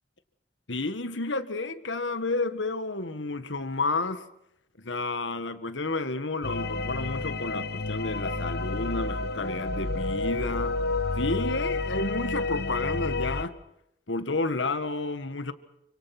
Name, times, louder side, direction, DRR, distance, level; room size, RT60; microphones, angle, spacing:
voice 1, 0.7-4.2 4.8-10.8 11.2-13.5 14.1-15.5, left 3 dB, 90° left, 1.8 m, -31 dB
sound 1, 6.4-13.4, left 3 dB, 60° left, 1.3 m, -30 dB
29.5 x 25.5 x 6.1 m
head